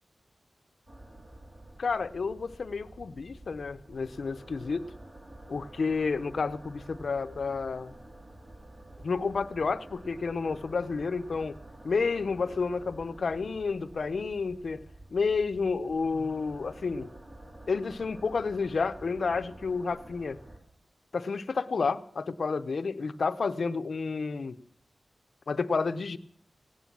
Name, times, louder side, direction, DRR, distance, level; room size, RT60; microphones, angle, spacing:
sound 1, 0.9-20.6, right 1 dB, 45° right, 4.2 m, -49 dB
voice 1, 1.8-4.9 5.5-7.9 9.0-11.6 11.8-14.8 15.1-17.1 17.7-20.4 21.1-24.6 25.5-26.2, left 4 dB, 70° left, 12 dB, 0.7 m, -30 dB
17.0 x 9.3 x 7.5 m, 0.62 s
wide cardioid pair, 70°, 0 cm